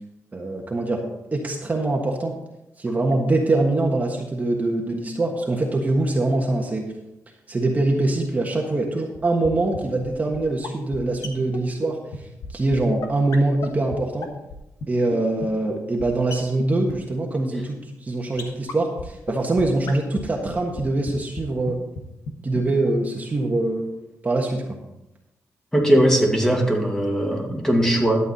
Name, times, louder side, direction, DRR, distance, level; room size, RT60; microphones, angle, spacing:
voice 1, 0.3-1.0 1.3-2.3 2.8-6.9 7.5-12.0 12.5-14.3 14.9-21.8 22.4-24.0 24.2-24.6, right 2 dB, 30° right, 0 dB, 1.4 m, -23 dB
sound 1, 9.1-9.2 9.4-9.5 9.7-9.8 10.0-10.1 10.3-10.4 10.6-10.7 10.9-11.0 11.2-11.3 11.5-11.6 11.8-11.9 12.1-12.2 12.4-12.5 12.7-12.8 13.0-13.1 13.3-13.4 13.6-13.7 13.9-14.0 14.2-14.5 14.8-14.9 15.1-15.2 15.4-15.5 15.7-15.8 16.0-16.1 16.3-16.4 16.6-16.7 16.9-17.0 18.4-18.5 18.7-18.8 19.0-19.1 19.3-19.4 19.6-19.7 19.9-20.0 20.2-20.3 20.4-20.8 21.1-21.2 21.4-21.5 21.7-21.8 21.9-22.0 22.3-22.4 22.5-22.6 22.8-22.9, left 5 dB, 85° left, 1.3 m, -32 dB
voice 2, 25.7-28.3, right 1 dB, 10° left, 0 dB, 2.3 m, -19 dB
11.5 x 8.3 x 4.1 m, 0.91 s
cardioid pair, 105°, 6 cm